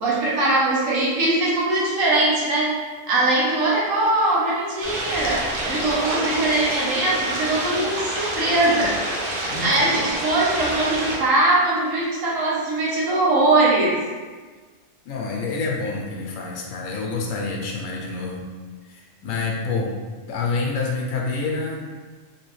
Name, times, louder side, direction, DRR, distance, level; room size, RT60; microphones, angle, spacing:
voice 1, 0.0-9.0 9.6-14.0, right 2 dB, 80° right, -5 dB, 1.3 m, -21 dB
sound 1, 4.8-11.2, right 1 dB, 50° right, 0.8 m, -28 dB
voice 2, 9.5-9.8 15.0-18.4 18.8-19.9 20.3-21.8, left 4 dB, 90° left, -1 dB, 1.0 m, -27 dB
3.2 x 3.0 x 3.1 m, 1.4 s
omnidirectional pair, 1.4 m